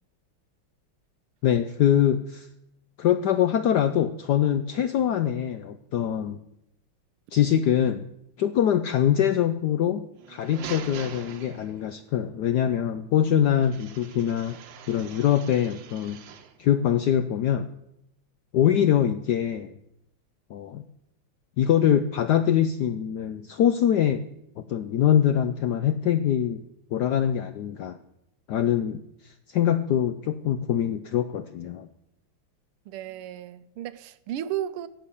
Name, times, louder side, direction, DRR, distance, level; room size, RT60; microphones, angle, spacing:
voice 1, 1.4-2.5 3.0-6.4 7.3-8.0 8.4-14.6 14.9-16.2 16.6-17.7 18.5-19.7 20.5-20.8 21.6-24.2 24.7-26.6 26.9-28.0 28.5-31.9, left 10 dB, 80° left, 0.9 m, -23 dB
sound 1, 10.1-12.1 13.6-16.6, right 8 dB, 65° right, 1.5 m, -43 dB
voice 2, 32.9-34.9, right 11 dB, 90° right, 1.6 m, -34 dB
17.0 x 6.9 x 7.0 m
omnidirectional pair, 2.4 m